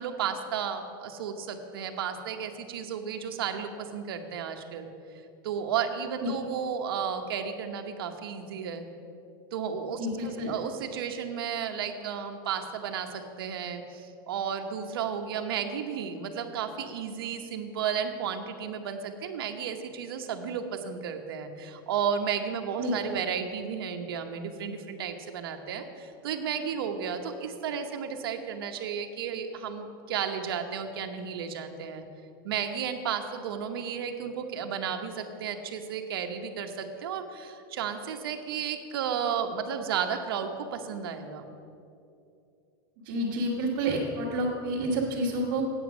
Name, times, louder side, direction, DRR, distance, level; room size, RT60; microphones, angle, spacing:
voice 1, 0.0-4.9 5.4-8.9 9.5-32.0 32.4-41.6, right 7 dB, 85° right, 5 dB, 1.0 m, -33 dB
voice 2, 10.0-10.5 22.8-22.9 43.0-45.6, right 1 dB, 60° right, -7 dB, 1.5 m, -29 dB
8.3 x 8.0 x 6.1 m, 2.7 s
supercardioid pair, 160°, 12 cm